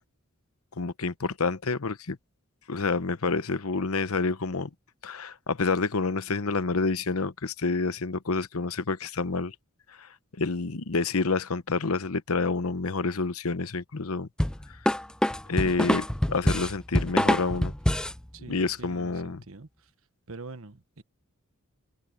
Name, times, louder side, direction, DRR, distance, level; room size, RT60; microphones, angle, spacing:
voice 1, 0.8-2.2 2.7-4.7 5.0-9.5 10.0-10.1 10.4-14.3 15.5-17.7 18.5-19.4, left 4 dB, 80° left, 1.0 m, -28 dB
sound 1, 14.4-18.2, left 1 dB, 5° left, 0.3 m, -25 dB
voice 2, 18.3-19.7 20.3-21.0, right 3 dB, 70° right, 1.4 m, -44 dB
head